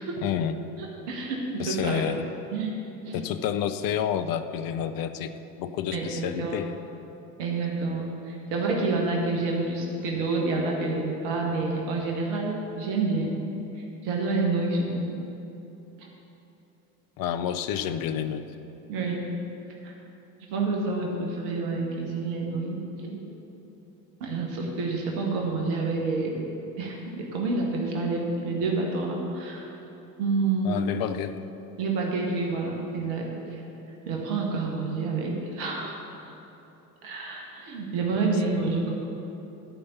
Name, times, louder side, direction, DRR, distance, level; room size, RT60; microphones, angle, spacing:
voice 1, 0.2-0.5 1.6-2.3 3.1-5.3 5.6-6.7 17.2-18.5 30.6-31.4, left 9 dB, 45° left, 10 dB, 0.7 m, -29 dB
voice 2, 0.8-2.1 2.5-2.8 3.1-3.2 5.9-6.6 7.4-13.4 14.0-15.2 16.0-16.1 18.9-19.2 19.8-19.9 20.5-23.2 24.2-26.5 26.8-29.7 30.2-30.8 31.8-33.6 34.1-35.9 37.0-38.9, right 3 dB, 60° right, 0 dB, 1.8 m, -28 dB
13.0 x 5.3 x 6.9 m, 3.0 s
figure-of-eight pair, 65°, 48 cm